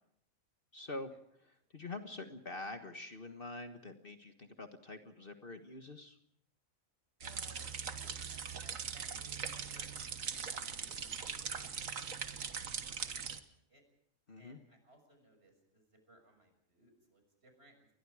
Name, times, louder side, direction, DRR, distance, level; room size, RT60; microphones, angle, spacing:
voice 1, 0.7-1.1 1.5-6.2 14.3-14.6, left 2 dB, 45° left, 6 dB, 1.7 m, -46 dB
voice 2, 7.2-9.9 10.3-13.8 14.4-17.9, right 1 dB, 50° right, 5 dB, 6.8 m, -64 dB
sound 1, 7.2-13.4, right 6 dB, 70° right, 1.7 m, -41 dB
29.0 x 22.0 x 4.9 m, 0.67 s
omnidirectional pair, 1.4 m